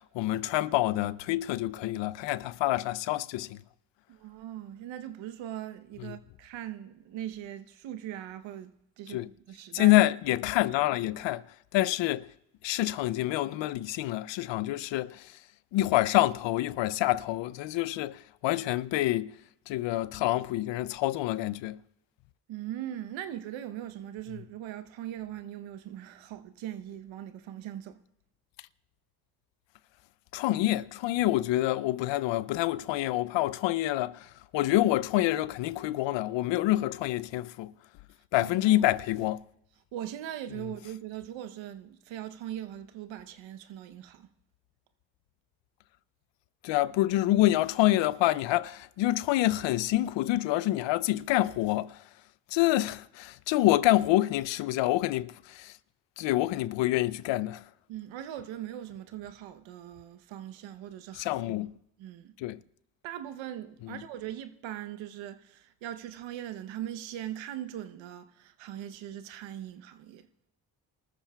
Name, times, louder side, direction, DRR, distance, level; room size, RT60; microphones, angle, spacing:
voice 1, 0.0-3.6 6.0-6.1 9.1-9.3 9.7-11.5 11.7-12.3 12.6-15.4 15.7-19.4 19.7-21.8 30.3-37.7 38.3-39.4 46.6-52.0 52.5-55.7 56.2-57.6 61.1-61.7 62.4-62.6 63.8-64.0, left 16 dB, 75° left, 0.6 m, -27 dB
voice 2, 4.1-9.9 22.5-28.0 38.4-38.8 39.9-44.3 57.9-61.4 62.0-62.4 63.0-70.3, right 11 dB, 80° right, 0.9 m, -40 dB
28.0 x 14.0 x 2.3 m
supercardioid pair, 60°, 45 cm